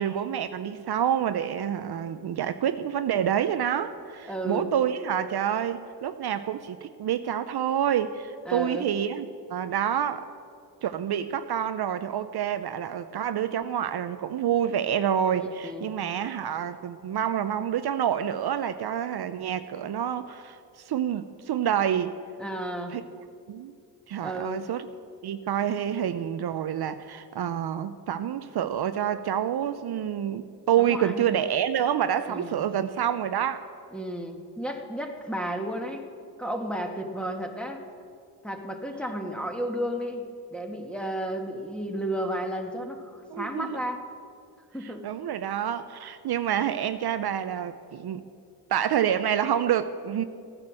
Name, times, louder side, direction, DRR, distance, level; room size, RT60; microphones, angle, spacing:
voice 1, 0.0-10.2 10.8-22.1 22.9-23.0 23.5-23.7 24.1-24.8 25.2-33.7 43.3-43.8 45.0-48.2 48.7-50.2, right 9 dB, 60° right, 10 dB, 0.7 m, -28 dB
voice 2, 4.3-4.7 8.4-8.9 15.4-16.0 22.4-23.0 24.2-24.6 30.8-31.3 32.3-32.6 33.9-36.1 36.4-37.8 38.4-44.0 44.7-45.1, right 1 dB, ahead, 3 dB, 1.7 m, -33 dB
15.0 x 9.7 x 7.5 m, 2.4 s
cardioid pair, 80°, 43 cm